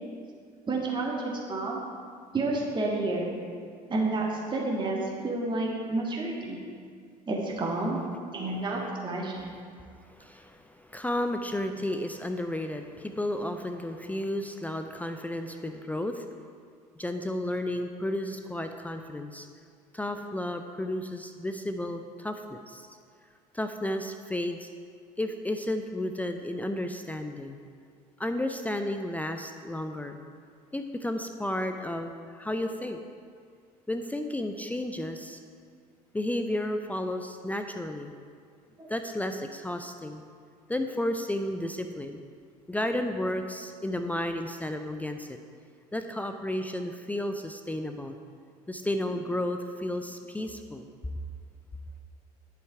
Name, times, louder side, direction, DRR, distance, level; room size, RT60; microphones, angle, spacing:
voice 1, 0.7-1.8 2.3-3.4 3.9-6.6 7.3-8.0 8.3-9.5 38.8-38.9, right 2 dB, 25° right, -2 dB, 1.9 m, -30 dB
voice 2, 9.8-16.3 17.0-19.5 19.9-22.9 23.5-24.7 25.2-27.6 28.2-30.2 30.7-33.0 33.9-35.4 36.1-38.1 38.9-40.2 40.7-42.2 42.7-45.4 45.9-48.2 48.7-50.9, left 1 dB, 5° left, 6 dB, 0.6 m, -32 dB
11.0 x 8.2 x 4.7 m, 2.2 s
figure-of-eight pair, 60°, 20 cm